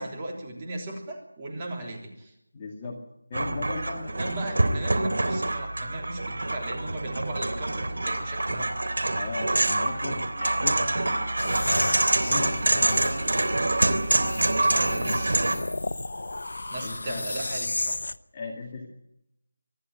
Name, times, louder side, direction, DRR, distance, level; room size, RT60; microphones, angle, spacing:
voice 1, 0.0-2.3 4.2-8.7 14.5-15.7 16.7-18.0, right 1 dB, 20° right, 0 dB, 3.4 m, -37 dB
voice 2, 2.5-4.4 9.1-12.0 12.3-13.7 16.8-17.3 18.3-18.9, left 3 dB, 20° left, 0 dB, 2.2 m, -38 dB
sound 1, 3.3-15.6, right 2 dB, 75° right, 3.3 m, -26 dB
sound 2, 11.4-18.2, left 2 dB, 75° left, 0.9 m, -33 dB
25.0 x 11.5 x 9.3 m, 0.82 s
figure-of-eight pair, 175°, 0 cm